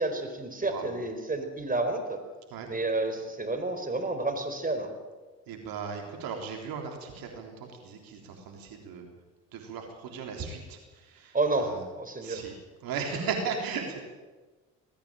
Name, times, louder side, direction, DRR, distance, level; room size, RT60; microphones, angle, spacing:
voice 1, 0.0-2.2 2.7-4.9 11.3-12.4, right 2 dB, 20° right, 6 dB, 4.3 m, -30 dB
voice 2, 0.6-0.9 2.5-2.7 5.5-9.1 9.5-11.8 12.2-12.5 12.8-14.0, right 5 dB, 65° right, 2 dB, 3.7 m, -36 dB
20.5 x 14.5 x 8.9 m, 1.3 s
hypercardioid pair, 55°, 38 cm